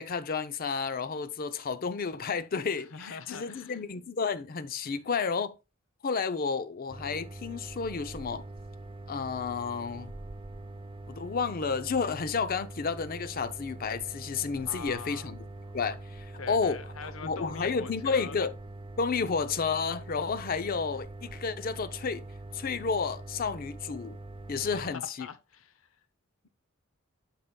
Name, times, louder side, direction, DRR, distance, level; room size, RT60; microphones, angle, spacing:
voice 1, 0.0-5.6 6.0-8.4 9.1-10.1 11.1-15.4 15.7-18.5 19.0-22.2 22.5-24.2 24.5-25.3, left 5 dB, 45° left, 0.5 m, -31 dB
voice 2, 2.9-3.8 14.5-15.3 16.4-18.4 24.6-25.9, left 5 dB, 90° left, 0.7 m, -43 dB
sound 1, 6.9-24.9, right 2 dB, 25° right, 0.6 m, -44 dB
8.6 x 5.8 x 2.2 m
head